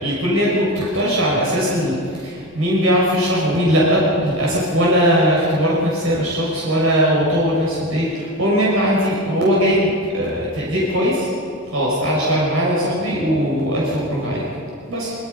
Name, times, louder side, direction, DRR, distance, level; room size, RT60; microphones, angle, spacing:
voice 1, 0.0-11.3 11.7-14.5 14.9-15.1, equal, 75° right, -5 dB, 6.1 m, -19 dB
25.0 x 25.0 x 5.5 m, 2.4 s
head